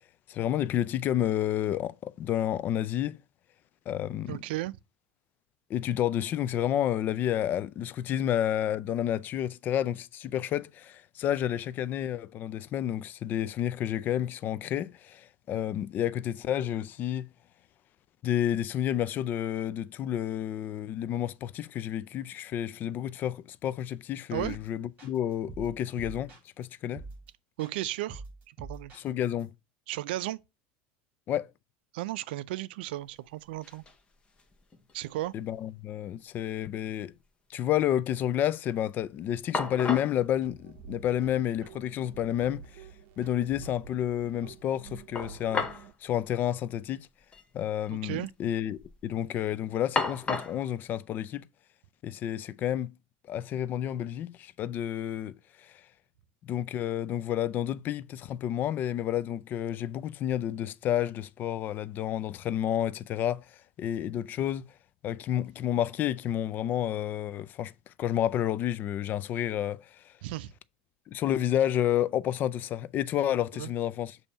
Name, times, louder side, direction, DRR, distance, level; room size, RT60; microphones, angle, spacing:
voice 1, 0.3-3.2 3.9-4.4 5.7-17.3 18.2-27.0 28.9-29.5 31.3-31.5 35.3-37.1 37.5-42.8 43.2-45.7 46.0-47.1 47.5-51.5 52.0-52.9 53.3-55.8 56.4-64.7 65.0-70.1 71.1-74.2, left 11 dB, 35° left, 0.3 m, -30 dB
voice 2, 4.3-4.7 24.3-24.6 27.6-28.9 29.9-30.4 31.9-33.8 34.9-35.3 47.9-48.3 70.2-70.5 73.5-73.7, right 16 dB, 80° right, 0.4 m, -34 dB
sound 1, 24.3-24.7 25.0-26.6 26.9-27.3 27.6-29.4, right 3 dB, 25° right, 3.8 m, -44 dB
sound 2, 33.1-33.2 33.4-34.0 34.4-35.3 35.5-35.6 39.0-39.1 39.5-40.2 41.3-41.4 41.8-41.9 45.1-45.9 46.2-46.3 47.2-47.4 47.7-48.2 48.7-49.0 49.9-50.6, left 3 dB, 20° left, 0.9 m, -34 dB
sound 3, 40.3-45.9, right 6 dB, 55° right, 0.7 m, -49 dB
6.9 x 2.7 x 5.4 m
supercardioid pair, 135°, 5 cm